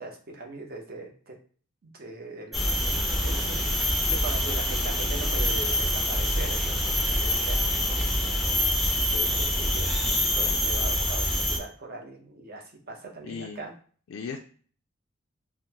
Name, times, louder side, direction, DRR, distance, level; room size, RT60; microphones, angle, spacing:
voice 1, 0.0-1.4 1.8-8.3 8.6-13.7, right 3 dB, 45° right, 2 dB, 0.6 m, -41 dB
sound 1, 2.5-11.6, left 1 dB, ahead, 0.5 m, -25 dB
voice 2, 13.2-13.6 14.1-14.4, left 5 dB, 75° left, 4 dB, 0.3 m, -36 dB
3.7 x 2.0 x 2.8 m, 0.43 s
head